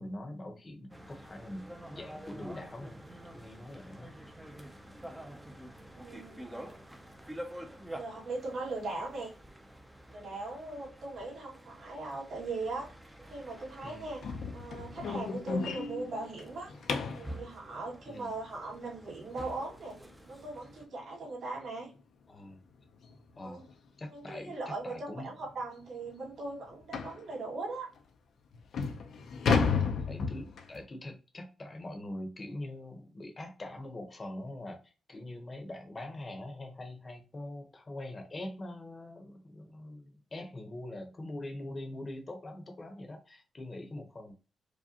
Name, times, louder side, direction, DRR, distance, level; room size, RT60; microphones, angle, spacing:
voice 1, 0.0-3.0 3.3-4.2 13.8-14.1 18.1-18.3 22.3-22.6 23.4-23.6 24.0-24.5 24.8-25.3 30.0-44.3, left 1 dB, 25° left, 0.8 m, -43 dB
sound 1, 0.9-20.9, right 1 dB, 5° right, 0.5 m, -48 dB
voice 2, 5.9-6.7 8.0-9.3 10.1-12.9 13.2-14.2 14.5-16.7 17.1-21.9 23.4-23.6 24.1-27.9, right 3 dB, 55° right, 2.0 m, -39 dB
sound 2, 14.2-17.3 20.1-20.2 20.7-20.9 21.2-21.3 21.8-21.9 23.0-23.2 23.6-23.7 24.4-24.5 24.8-24.9 25.4-25.5 26.9-27.2 28.0-28.1 28.5-30.8, left 5 dB, 60° left, 0.5 m, -32 dB
4.8 x 2.2 x 2.8 m
wide cardioid pair, 160°, 0 cm